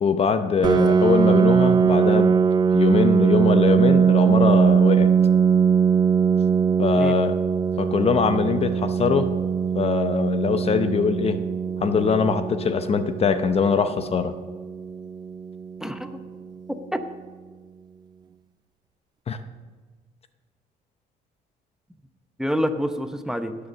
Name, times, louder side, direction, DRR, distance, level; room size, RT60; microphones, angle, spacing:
voice 1, 0.0-2.4 2.7-5.1 6.8-7.4 7.8-9.3 9.7-11.4 11.8-14.4 19.3-19.4, left 5 dB, 35° left, 10 dB, 0.7 m, -22 dB
Piano, 0.6-16.1, right 6 dB, 25° right, 0.3 m, -21 dB
voice 2, 15.8-16.2 16.7-17.0 22.4-23.6, equal, 5° right, 8 dB, 0.8 m, -27 dB
16.0 x 6.8 x 6.3 m, 1.4 s
cardioid pair, 110°, 17 cm